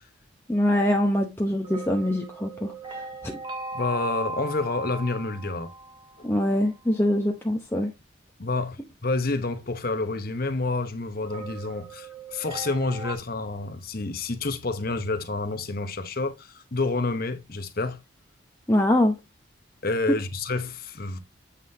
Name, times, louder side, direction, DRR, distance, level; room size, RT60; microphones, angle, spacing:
voice 1, 0.5-3.3 6.2-7.9 18.7-19.1, left 1 dB, 10° left, 0.8 m, -24 dB
sound 1, 1.6-6.5 11.2-13.2, right 3 dB, 25° right, 1.4 m, -38 dB
voice 2, 3.7-5.7 6.2-6.3 8.4-18.0 19.8-21.2, left 3 dB, 45° left, 1.0 m, -29 dB
8.4 x 5.6 x 2.8 m
head